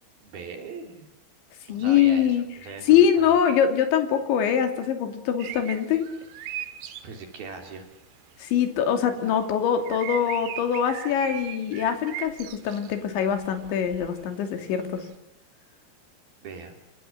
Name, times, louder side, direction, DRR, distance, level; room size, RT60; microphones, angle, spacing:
voice 1, 0.2-1.1 1.7-3.4 7.0-7.8 16.4-16.7, right 4 dB, 60° right, 5 dB, 5.0 m, -40 dB
voice 2, 1.7-2.4 2.9-6.1 8.4-15.0, left 8 dB, 85° left, 6 dB, 5.0 m, -23 dB
sound 1, 5.4-7.3 7.8-7.9 9.3-9.5 9.8-12.9 13.2-14.2 15.0-15.1, right 12 dB, 85° right, 4.1 m, -38 dB
28.5 x 25.0 x 7.4 m, 0.84 s
omnidirectional pair, 5.1 m